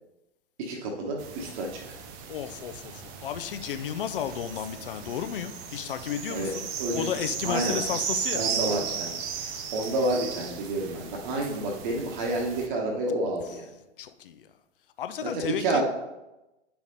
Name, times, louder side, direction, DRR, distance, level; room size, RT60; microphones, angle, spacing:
voice 1, 0.6-2.0 6.3-6.5 6.8-7.1 7.4-7.8 8.3-9.1 9.7-13.6 15.2-15.8, right 2 dB, 45° right, 0 dB, 1.2 m, -29 dB
sound 1, 1.2-12.7, right 7 dB, 20° right, 0.4 m, -36 dB
voice 2, 2.3-8.5 13.4-13.7 14.0-14.5 15.0-15.8, left 9 dB, 50° left, 10 dB, 0.6 m, -33 dB
9.4 x 5.7 x 2.7 m, 0.98 s
figure-of-eight pair, 105°, 34 cm